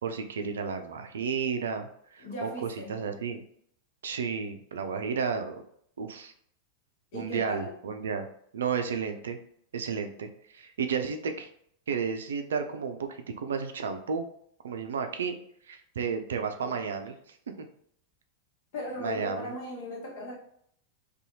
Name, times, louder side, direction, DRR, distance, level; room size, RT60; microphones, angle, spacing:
voice 1, 0.0-3.4 4.0-5.6 6.0-6.3 7.1-8.3 8.5-9.4 9.7-11.5 11.9-14.3 14.6-15.4 15.7-17.1 19.0-19.5, right 6 dB, 65° right, 7 dB, 0.3 m, -32 dB
voice 2, 2.2-2.9 7.1-7.7 16.6-16.8 18.7-20.4, left 1 dB, 50° left, -2 dB, 1.0 m, -38 dB
2.6 x 2.3 x 2.7 m, 0.66 s
figure-of-eight pair, 90°, 0 cm